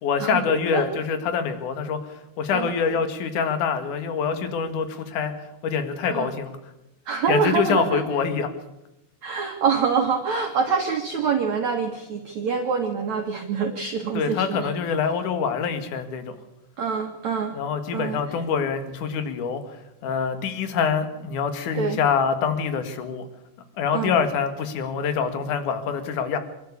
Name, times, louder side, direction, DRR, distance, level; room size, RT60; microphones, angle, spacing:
voice 1, 0.0-5.3 5.6-6.5 7.3-8.5 14.1-16.4 17.5-19.6 20.0-23.3 23.8-26.4, left 6 dB, 55° left, 9 dB, 2.8 m, -25 dB
voice 2, 7.1-8.0 9.2-14.7 16.8-17.5 17.9-18.2 21.7-22.0 23.9-24.2, right 6 dB, 60° right, 3 dB, 2.1 m, -25 dB
25.5 x 12.5 x 8.4 m, 0.90 s
omnidirectional pair, 5.3 m